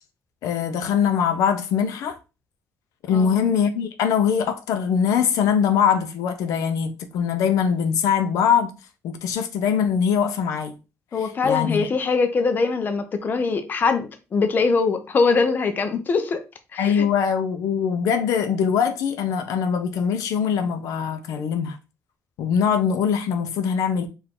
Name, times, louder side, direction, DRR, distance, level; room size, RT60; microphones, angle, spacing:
voice 1, 0.4-2.2 3.1-8.7 9.0-10.7 11.4-11.9 16.8-21.8 22.4-24.1, left 7 dB, 85° left, 0.7 m, -22 dB
voice 2, 11.1-16.4 16.7-17.1, left 4 dB, 35° left, 0.6 m, -22 dB
4.7 x 2.6 x 3.7 m
cardioid pair, 135°, 6 cm